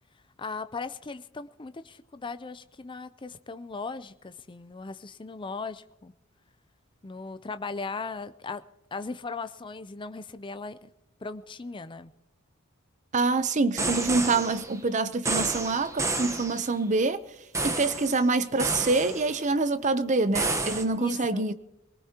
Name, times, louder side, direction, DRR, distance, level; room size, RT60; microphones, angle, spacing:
voice 1, 0.4-6.1 7.0-8.6 8.9-10.9 11.2-12.1 21.0-21.5, left 4 dB, 25° left, 0.5 m, -38 dB
voice 2, 13.1-17.2 17.6-21.5, right 3 dB, 35° right, 0.6 m, -26 dB
sound 1, 13.8-14.7 15.2-16.7 17.5-18.2 18.6-19.3 20.3-20.8, right 3 dB, 15° right, 1.1 m, -30 dB
24.5 x 18.5 x 2.9 m
head